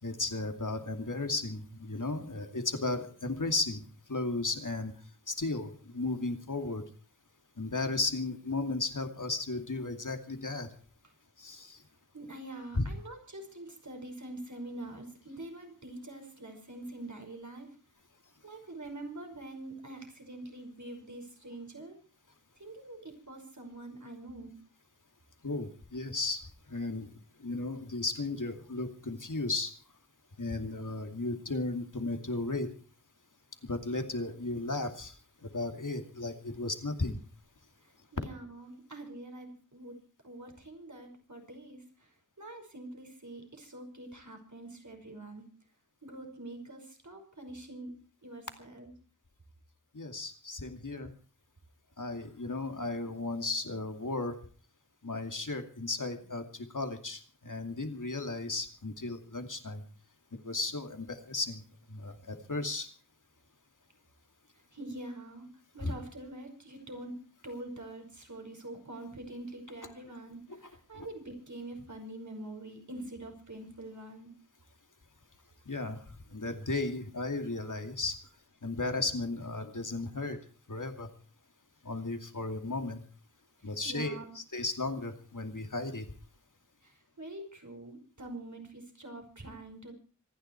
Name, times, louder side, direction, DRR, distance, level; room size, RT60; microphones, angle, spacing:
voice 1, 0.0-4.9 5.3-6.8 7.6-10.7 11.4-11.8 25.4-26.4 26.7-27.1 27.4-29.7 30.4-32.7 33.6-35.1 35.4-37.2 49.9-51.1 52.0-54.4 55.0-59.8 60.4-61.6 61.9-62.9 65.8-65.9 70.9-71.1 75.7-76.0 76.3-78.2 78.6-80.4 80.7-81.1 81.8-83.0 83.6-86.1, left 3 dB, 75° left, 6 dB, 2.5 m, -35 dB
voice 2, 12.1-17.7 18.4-22.0 22.6-24.5 37.8-39.9 40.2-45.4 46.0-47.9 48.2-48.9 64.7-65.5 65.7-67.2 67.4-74.3 83.6-84.3 86.8-89.9, right 1 dB, 65° right, 4 dB, 5.4 m, -45 dB
26.0 x 10.5 x 4.6 m, 0.39 s
wide cardioid pair, 45°, 31 cm